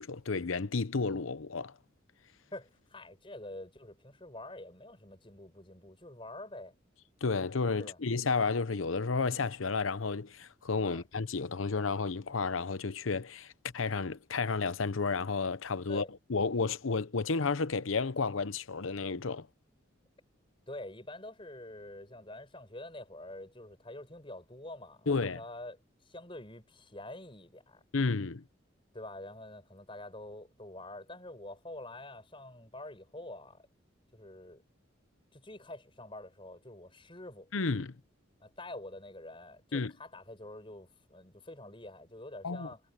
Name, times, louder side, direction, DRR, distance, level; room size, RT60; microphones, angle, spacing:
voice 1, 0.0-1.7 7.2-16.0 16.3-19.5 25.1-25.4 27.9-28.4 37.5-38.0 39.7-39.9 42.4-42.7, left 4 dB, 85° left, 0.8 m, -32 dB
voice 2, 2.5-6.7 7.8-8.0 10.9-11.0 15.9-16.1 20.7-25.8 26.0-27.8 28.9-33.7 34.1-34.6 35.3-37.5 38.4-42.8, left 1 dB, 25° left, 6.0 m, -46 dB
head